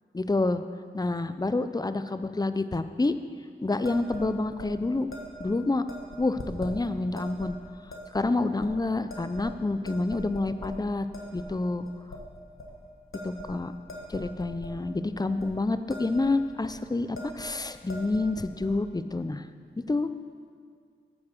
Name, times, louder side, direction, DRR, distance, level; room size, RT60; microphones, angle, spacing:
voice 1, 0.1-0.6 0.9-3.1 3.6-5.1 5.4-5.8 6.2-7.6 8.1-11.1 11.3-11.9 13.2-13.7 14.1-19.5 19.9-20.1, left 2 dB, 20° left, 11 dB, 0.5 m, -28 dB
sound 1, 3.8-4.3 4.6-4.7 5.1-5.5 5.9-6.7 7.2-7.5 7.9-8.2 8.6-8.7 9.1-9.6 9.8-10.7 11.1-11.5 11.8-12.2 12.6-12.7 13.1-14.7 15.2-15.5 15.7-16.2 16.5-16.7 17.2-17.5 17.8-18.7, left 1 dB, 90° left, 1.3 m, -41 dB
9.1 x 7.1 x 6.6 m, 2.1 s
wide cardioid pair, 45°, 21 cm